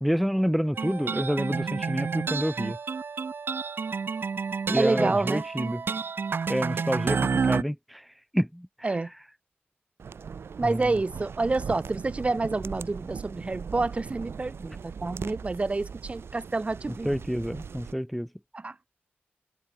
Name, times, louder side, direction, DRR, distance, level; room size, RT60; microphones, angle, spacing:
voice 1, 0.0-2.8 4.7-5.8 6.5-8.0 8.3-9.0 10.6-10.8 17.0-18.3, equal, ahead, 0.7 m, -28 dB
sound 1, 0.8-7.6, right 5 dB, 60° right, 2.3 m, -30 dB
voice 2, 4.8-5.4 7.1-7.3 8.8-9.1 10.6-17.1 18.5-18.7, right 3 dB, 30° right, 5.7 m, -28 dB
sound 2, 10.0-17.9, right 6 dB, 85° right, 7.2 m, -39 dB
wide cardioid pair, 130°, 4 cm